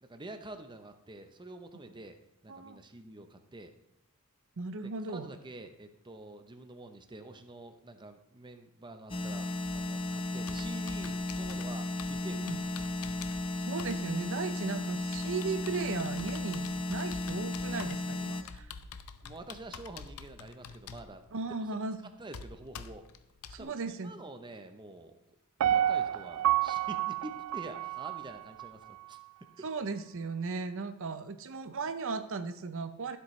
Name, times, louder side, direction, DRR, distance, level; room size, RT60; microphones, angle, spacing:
voice 1, 0.0-2.2 2.4-3.7 5.1-12.7 19.2-21.2 22.2-23.1 23.6-25.2 25.7-29.2 29.6-29.7, right 2 dB, 20° right, 7 dB, 0.7 m, -47 dB
voice 2, 2.5-2.8 4.6-5.3 12.5-12.6 13.6-18.7 21.3-22.1 23.5-24.2 29.6-33.2, right 4 dB, 65° right, 10 dB, 0.7 m, -36 dB
sound 1, 9.1-18.4, left 2 dB, 25° left, 0.8 m, -35 dB
Computer keyboard, 9.6-23.6, left 5 dB, 85° left, 0.6 m, -48 dB
Piano, 25.6-28.7 29.1-29.2, right 11 dB, 85° right, 0.3 m, -29 dB
12.5 x 7.9 x 3.2 m, 0.81 s
head